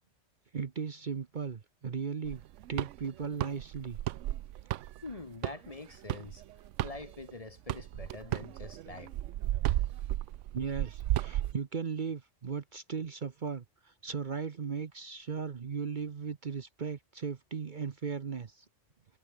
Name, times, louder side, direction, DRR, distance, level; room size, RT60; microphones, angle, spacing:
voice 1, 0.5-4.0 10.5-18.6, right 6 dB, 45° right, 1.0 m, -37 dB
sound 1, 2.3-7.3 7.7-11.5, right 14 dB, 90° right, 0.9 m, -34 dB
voice 2, 5.0-6.4 6.8-9.1, left 3 dB, 30° left, 1.3 m, -45 dB
omnidirectional pair, 1.2 m